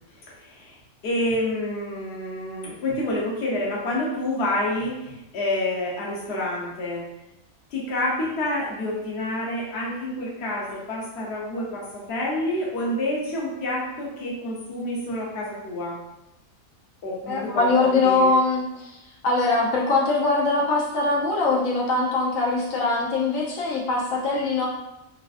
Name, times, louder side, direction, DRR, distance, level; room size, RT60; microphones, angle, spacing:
voice 1, 0.3-0.8 1.0-7.0 7.7-16.0 17.0-18.3, left 1 dB, 60° left, -4 dB, 1.0 m, -28 dB
voice 2, 17.3-19.0 19.2-24.7, left 3 dB, 85° left, -3 dB, 1.1 m, -22 dB
3.3 x 2.4 x 2.3 m, 0.91 s
omnidirectional pair, 1.4 m